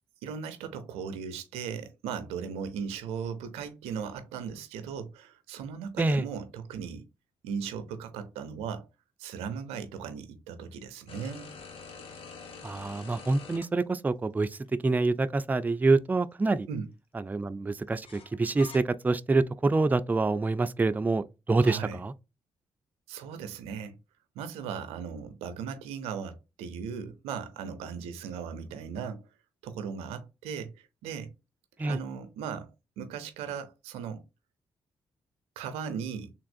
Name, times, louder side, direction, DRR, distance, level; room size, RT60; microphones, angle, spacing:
voice 1, 0.2-7.1 7.4-8.9 9.2-11.5 16.7-16.9 21.6-22.0 23.1-23.9 24.4-29.3 29.6-31.3 31.8-32.7 33.0-34.2 35.6-36.3, right 7 dB, 90° right, 0.5 m, -37 dB
sound 1, 11.1-13.7 14.7-14.8 18.0-18.8, left 5 dB, 70° left, 0.8 m, -46 dB
voice 2, 12.6-14.5 14.8-16.7 17.3-22.1 31.8-32.0, right 3 dB, 15° right, 0.3 m, -26 dB
3.4 x 2.9 x 2.5 m
supercardioid pair, 50°, 10 cm